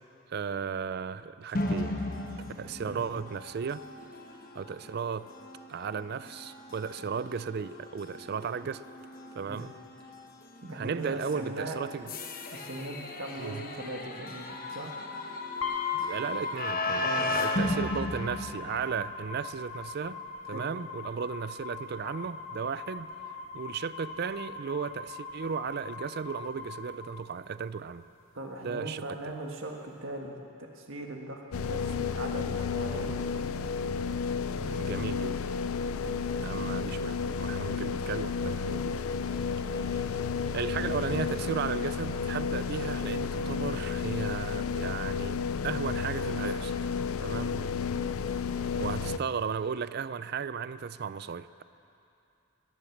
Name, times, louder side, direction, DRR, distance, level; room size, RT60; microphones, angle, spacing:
voice 1, 0.3-1.9 2.6-3.8 4.5-5.3 5.7-8.8 9.3-9.7 10.7-12.1 13.4-13.6 15.9-20.2 20.5-23.1 23.5-28.1 28.6-29.3 34.6-35.5 36.4-39.0 39.4-40.2 40.5-46.9 47.2-47.7 48.6-51.6, right 6 dB, 45° right, 15 dB, 0.4 m, -35 dB
sound 1, 1.5-19.3, left 2 dB, 40° left, 1.1 m, -36 dB
voice 2, 10.6-11.8 12.5-14.9 17.0-17.3 20.5-20.7 28.3-33.2 36.0-36.2 47.9-48.3, right 1 dB, 60° right, 1 dB, 1.6 m, -40 dB
sound 2, 15.6-27.6, left 5 dB, 65° left, 1.8 m, -40 dB
sound 3, 31.5-49.2, left 5 dB, 80° left, 0.5 m, -32 dB
20.0 x 10.0 x 7.2 m, 2.7 s
head